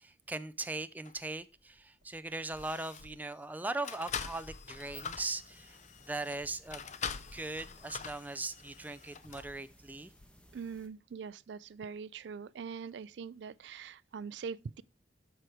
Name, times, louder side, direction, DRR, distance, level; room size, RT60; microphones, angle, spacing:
voice 1, 0.0-5.8 6.1-6.9 7.3-10.1, right 2 dB, 10° right, 0.5 m, -39 dB
sound 1, 1.0-1.2 2.0-2.2 2.5-3.2 3.8-9.5 10.2-10.3, left 6 dB, 40° left, 0.6 m, -44 dB
sound 2, 4.7-10.9, equal, 5° left, 1.2 m, -59 dB
voice 2, 10.5-14.8, right 6 dB, 75° right, 0.4 m, -43 dB
12.5 x 4.5 x 4.9 m
head